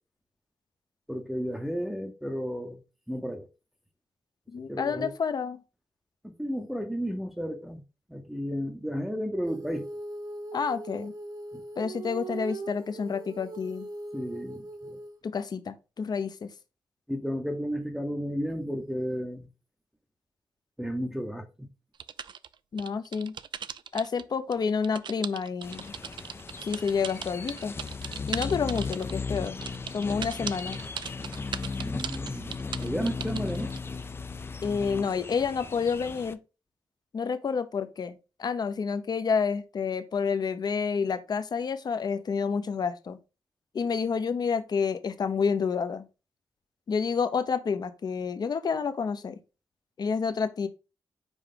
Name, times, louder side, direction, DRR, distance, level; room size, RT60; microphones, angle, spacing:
voice 1, 1.1-2.8 3.1-3.5 4.7-5.1 6.2-7.8 8.1-9.9 11.5-11.6 14.1-15.0 17.1-19.4 20.8-21.7 31.8-33.7, equal, 5° right, 0.7 m, -33 dB
voice 2, 4.5-5.6 10.5-11.1 11.8-13.9 15.2-16.5 22.7-23.4 23.9-25.9 26.6-27.8 28.3-29.6 29.9-30.8 34.6-36.4 37.1-43.2 43.7-46.1 46.9-49.4 50.0-50.7, left 5 dB, 55° left, 0.8 m, -29 dB
Female singing, 9.5-15.2, right 2 dB, 50° right, 0.9 m, -40 dB
sound 1, 22.0-24.2 24.5-33.8, right 8 dB, 70° right, 0.4 m, -38 dB
sound 2, 25.6-36.3, left 4 dB, 30° left, 0.4 m, -36 dB
5.4 x 4.6 x 3.8 m
wide cardioid pair, 110°, 8 cm